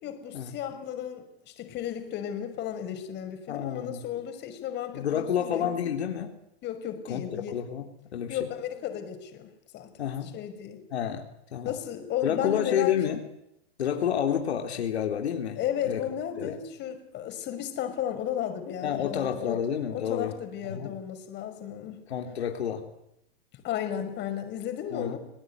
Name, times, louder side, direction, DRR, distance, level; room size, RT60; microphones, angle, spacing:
voice 1, 0.0-5.7 6.6-7.6 8.3-10.8 11.6-13.0 15.6-19.6 19.9-22.0 23.5-25.2, left 10 dB, 35° left, 7 dB, 5.6 m, -34 dB
voice 2, 3.5-4.0 4.9-6.3 7.1-8.4 10.0-10.3 10.9-11.2 11.5-11.8 12.2-13.2 13.8-15.6 15.8-16.0 16.4-16.5 18.8-20.3 20.7-20.9 22.1-22.8 24.9-25.2, left 9 dB, 80° left, 4 dB, 3.9 m, -29 dB
29.0 x 18.5 x 9.7 m, 0.83 s
hypercardioid pair, 130°, 32 cm